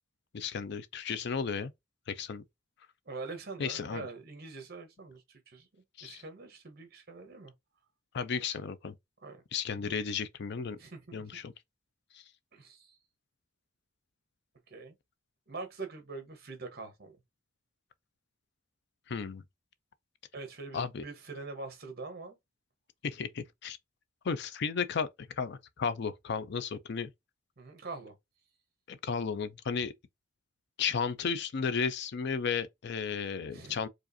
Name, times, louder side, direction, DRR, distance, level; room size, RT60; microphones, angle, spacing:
voice 1, 0.3-1.7 2.1-2.4 3.6-4.1 6.0-6.2 8.1-8.9 9.5-10.8 11.1-11.5 12.1-12.2 19.1-19.4 20.7-21.0 23.0-23.8 24.2-27.1 28.9-29.9 30.8-33.9, left 6 dB, 60° left, 0.5 m, -34 dB
voice 2, 3.1-7.5 9.2-9.4 9.8-9.9 10.8-11.3 12.5-13.0 14.7-14.9 15.5-17.2 20.3-22.4 27.6-28.1 33.5-33.7, right 3 dB, 50° right, 1.2 m, -44 dB
4.8 x 2.5 x 2.7 m
head